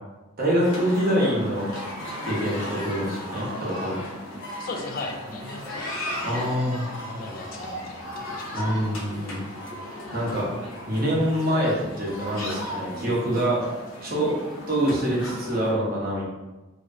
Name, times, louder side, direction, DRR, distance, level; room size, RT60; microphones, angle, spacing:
voice 1, 0.4-1.7 2.2-4.0 6.2-6.9 8.5-9.4 10.1-10.5 10.8-13.6 14.0-14.4 14.7-16.3, equal, 45° right, -5 dB, 1.1 m, -25 dB
sound 1, 0.6-15.7, left 1 dB, 70° left, 1.1 m, -36 dB
voice 2, 4.6-5.9 6.1-6.3 7.0-8.8, left 2 dB, 40° left, 2 dB, 0.4 m, -38 dB
3.2 x 2.4 x 4.0 m, 1.1 s
head